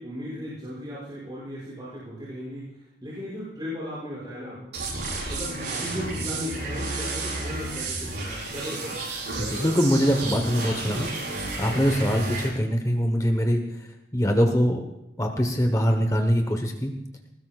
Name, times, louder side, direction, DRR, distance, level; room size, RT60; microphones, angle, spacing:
voice 1, 0.0-4.6 5.2-8.9, equal, 25° right, -10 dB, 6.4 m, -36 dB
sound 1, 4.7-12.5, right 2 dB, 75° right, 7.1 m, -31 dB
voice 2, 9.3-14.8 15.2-16.9, equal, 20° left, 4 dB, 1.1 m, -23 dB
20.5 x 19.5 x 2.5 m, 0.91 s
head